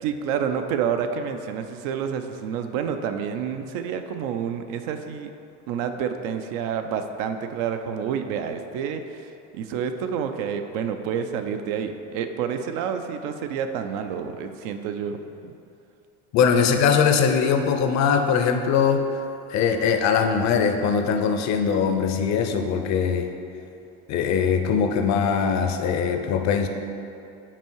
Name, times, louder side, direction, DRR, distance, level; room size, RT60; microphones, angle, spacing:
voice 1, 0.0-5.3 5.7-15.2 15.4-15.5, right 7 dB, 75° right, 7 dB, 0.6 m, -29 dB
voice 2, 16.3-19.1 19.5-23.3 24.1-26.7, left 6 dB, 50° left, 6 dB, 0.6 m, -21 dB
5.9 x 4.6 x 4.6 m, 2.8 s
supercardioid pair, 125°, 37 cm